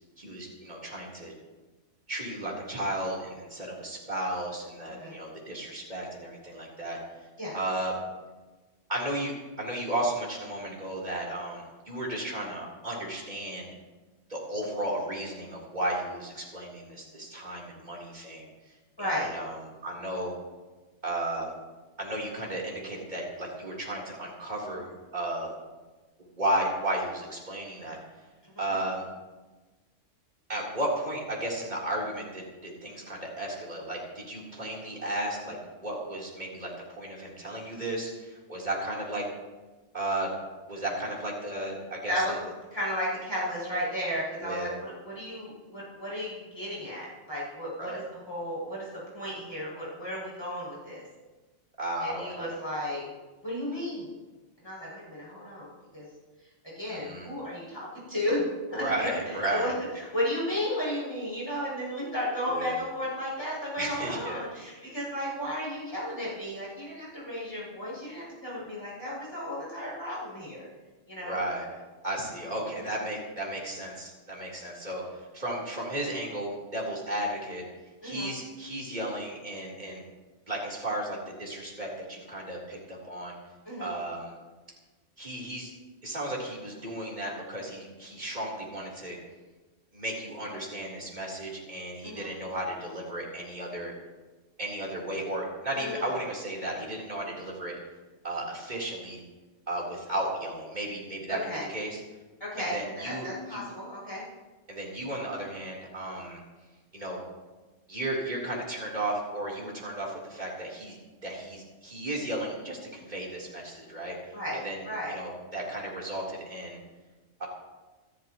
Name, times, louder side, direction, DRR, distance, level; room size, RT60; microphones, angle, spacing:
voice 1, 0.2-1.3 2.1-7.0 7.5-7.9 8.9-13.7 14.3-18.5 19.0-19.6 19.8-20.3 21.0-21.5 22.0-25.5 26.2-28.0 28.6-29.1 30.5-36.7 37.0-39.2 39.9-40.3 40.7-42.1 44.4-44.7 47.8-48.0 51.8-52.5 56.9-57.3 58.7-59.7 62.5-62.8 63.8-64.4 71.2-71.7 72.0-75.0 75.3-77.6 78.0-80.0 80.5-83.3 83.8-84.3 85.2-85.7 86.0-89.2 89.9-93.9 94.6-97.8 98.2-99.2 99.7-101.4 101.7-102.0 102.6-103.6 104.7-106.4 106.9-107.2 107.9-114.2 114.6-114.8 115.1-116.8 117.4-117.5, right 1 dB, 35° right, -4 dB, 4.1 m, -34 dB
voice 2, 19.0-19.3 28.5-28.7 42.1-42.3 42.7-48.0 48.3-48.9 49.1-51.0 52.0-53.0 53.4-54.1 54.6-56.0 56.6-58.4 58.7-70.7 71.1-71.5 78.0-78.3 83.7-83.9 92.0-92.3 95.7-96.2 101.3-101.6 102.4-104.2 114.3-115.1, left 1 dB, 20° left, -7 dB, 7.1 m, -34 dB
28.0 x 13.5 x 3.1 m, 1.2 s
omnidirectional pair, 1.3 m